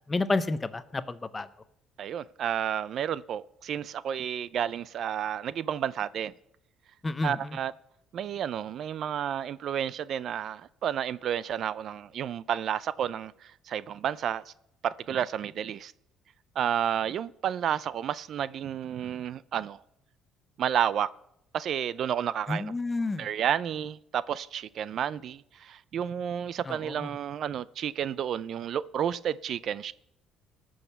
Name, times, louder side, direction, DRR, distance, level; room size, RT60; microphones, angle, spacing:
voice 1, 0.1-1.5 7.0-7.6 22.5-23.3 26.7-27.1, left 3 dB, 20° left, 0.7 m, -30 dB
voice 2, 2.0-6.3 7.2-7.7 8.1-14.5 14.8-15.9 16.6-19.8 20.6-21.1 21.5-22.7 23.2-29.9, right 9 dB, 55° right, 0.4 m, -31 dB
19.0 x 6.4 x 6.7 m
cardioid pair, 120°, 0 cm